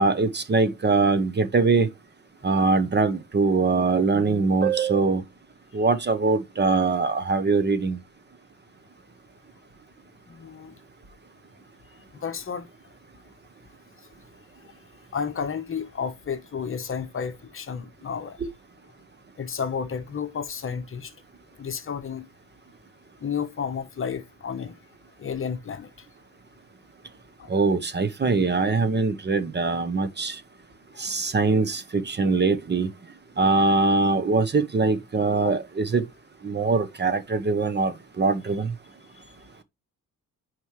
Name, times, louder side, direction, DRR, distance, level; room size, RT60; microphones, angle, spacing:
voice 1, 0.0-1.9 2.4-5.2 5.7-8.0 27.5-30.4 31.0-32.9 33.4-36.0 36.4-38.7, right 4 dB, 30° right, 0.8 m, -22 dB
voice 2, 10.3-10.7 12.2-12.6 15.1-18.4 19.4-21.1 21.6-22.2 23.2-24.7 25.2-25.9 27.4-27.5 35.4-35.6, left 6 dB, 35° left, 1.0 m, -31 dB
9.1 x 4.8 x 3.2 m
cardioid pair, 135°, 35 cm